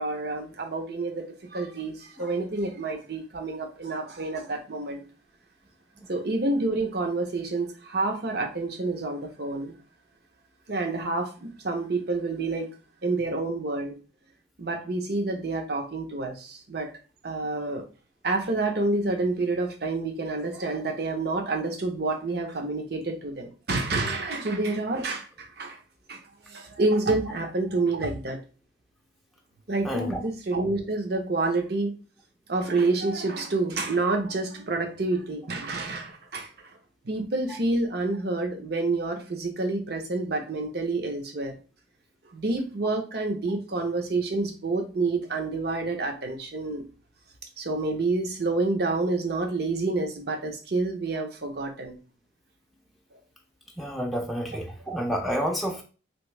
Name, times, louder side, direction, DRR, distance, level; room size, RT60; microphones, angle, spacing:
voice 1, 0.0-5.0 6.1-9.8 10.7-12.7 13.0-13.9 14.6-16.9 17.2-17.8 18.2-25.8 26.1-26.2 26.5-28.4 29.7-31.9 32.5-36.5 37.0-41.6 42.3-46.8 47.6-52.0, right 3 dB, 55° right, 0.7 m, -28 dB
voice 2, 29.8-30.2 53.8-55.8, equal, ahead, 0.4 m, -29 dB
2.9 x 2.6 x 3.2 m
head